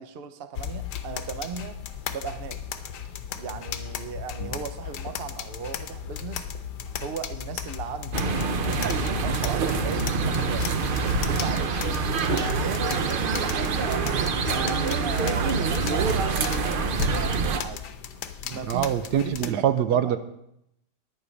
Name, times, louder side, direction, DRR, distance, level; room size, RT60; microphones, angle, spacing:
voice 1, 0.0-1.8 2.1-2.6 3.4-6.5 7.0-8.4 8.6-10.7 11.2-11.7 12.5-17.9 18.5-20.2, right 6 dB, 50° right, 10 dB, 0.7 m, -37 dB
sound 1, 0.6-19.5, left 8 dB, 75° left, 1.3 m, -35 dB
sound 2, 8.1-17.6, right 5 dB, 90° right, 0.4 m, -26 dB
voice 2, 18.7-20.2, right 10 dB, 70° right, 11 dB, 1.2 m, -24 dB
10.0 x 9.9 x 5.2 m, 0.80 s
omnidirectional pair, 1.9 m